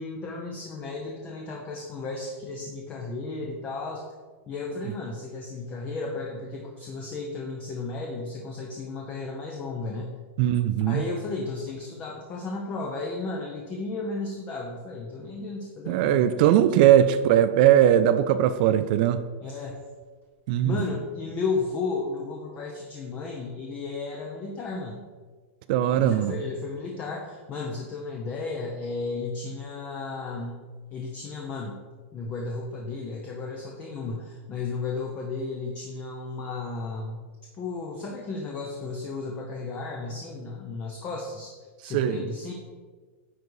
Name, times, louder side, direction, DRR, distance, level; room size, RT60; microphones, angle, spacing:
voice 1, 0.0-4.0 4.5-10.1 10.9-16.4 16.8-17.1 19.4-19.7 20.6-25.0 25.9-30.6 30.9-31.8 32.1-37.2 37.6-41.5 41.8-42.5, left 3 dB, 20° left, 0 dB, 0.7 m, -34 dB
voice 2, 10.4-11.0 15.9-19.2 20.5-20.8 25.7-26.4 41.9-42.2, right 11 dB, 40° right, 11 dB, 0.4 m, -20 dB
9.6 x 4.0 x 4.7 m, 1.4 s
supercardioid pair, 170°, 7 cm